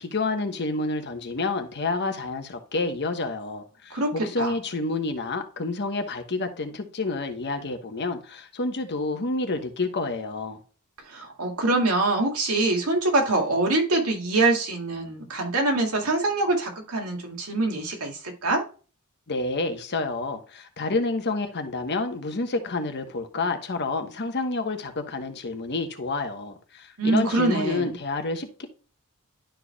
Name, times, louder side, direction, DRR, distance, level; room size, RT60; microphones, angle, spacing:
voice 1, 0.0-10.6 19.3-28.7, left 3 dB, 50° left, 1.1 m, -29 dB
voice 2, 3.9-4.5 11.1-18.6 27.0-27.9, right 2 dB, 75° right, 2.2 m, -24 dB
11.5 x 4.6 x 2.3 m
head